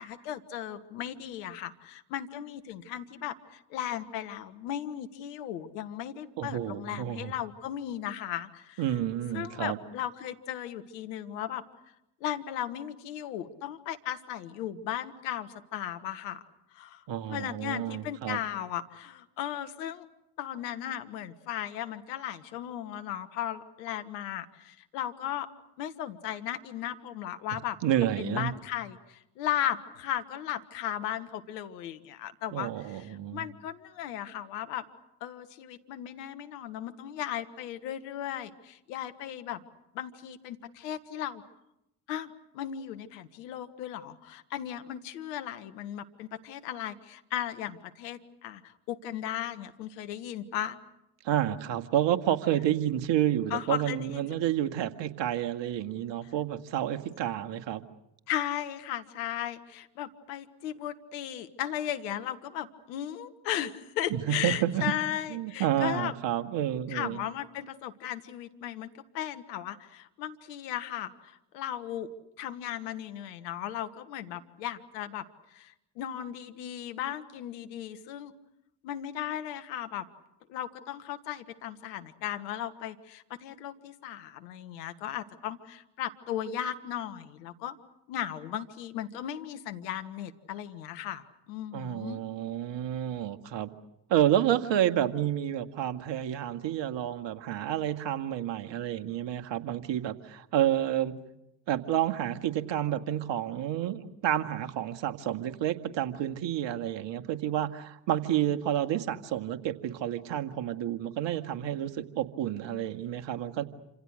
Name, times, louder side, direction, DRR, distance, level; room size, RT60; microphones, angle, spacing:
voice 1, 0.0-8.8 9.3-11.6 12.2-16.4 16.7-17.0 17.3-20.0 20.4-25.5 25.8-27.8 28.2-34.8 35.2-39.6 39.9-41.4 42.1-50.8 53.5-54.4 58.3-66.1 66.9-72.1 72.4-75.2 75.5-78.3 78.8-80.1 80.5-87.8 88.1-92.2, left 11 dB, 80° left, 9 dB, 1.6 m, -36 dB
voice 2, 6.4-7.3 8.8-9.8 17.1-18.4 27.8-28.5 32.5-33.5 51.2-57.8 64.1-64.8 65.3-67.2 91.7-93.7 94.1-101.2 101.7-113.6, right 11 dB, 65° right, 7 dB, 2.0 m, -30 dB
28.0 x 26.5 x 6.5 m, 0.85 s
hypercardioid pair, 50°, 48 cm